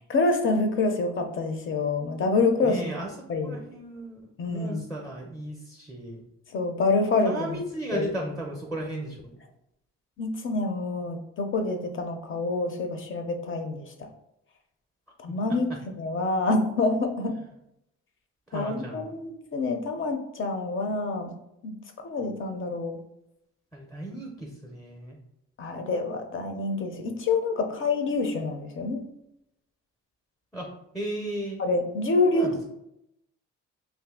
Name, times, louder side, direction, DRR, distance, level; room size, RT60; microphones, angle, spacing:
voice 1, 0.1-2.8 3.3-3.6 4.4-4.9 6.5-7.6 7.9-8.1 10.2-13.9 15.2-15.7 16.0-17.3 18.5-21.3 21.6-21.7 22.0-23.0 25.6-29.0 31.6-32.7, left 3 dB, 45° left, 6 dB, 0.6 m, -27 dB
voice 2, 2.6-3.1 3.4-6.2 7.2-9.4 15.3-15.6 18.5-19.2 23.7-25.2 30.5-31.6 32.3-32.5, right 1 dB, ahead, -1 dB, 0.5 m, -35 dB
2.6 x 2.5 x 3.6 m, 0.82 s
cardioid pair, 90°, 30 cm